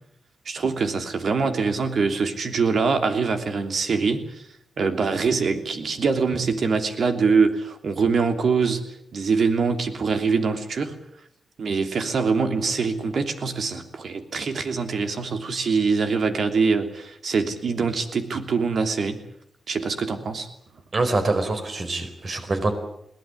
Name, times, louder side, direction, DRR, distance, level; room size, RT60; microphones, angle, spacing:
voice 1, 0.4-4.4 4.8-8.8 9.1-11.0 11.6-19.2 19.7-20.5, right 4 dB, 65° right, 7 dB, 3.1 m, -24 dB
voice 2, 20.9-22.7, right 2 dB, 45° right, 7 dB, 4.7 m, -24 dB
21.5 x 18.0 x 9.9 m, 0.77 s
cardioid pair, 85°, 0 cm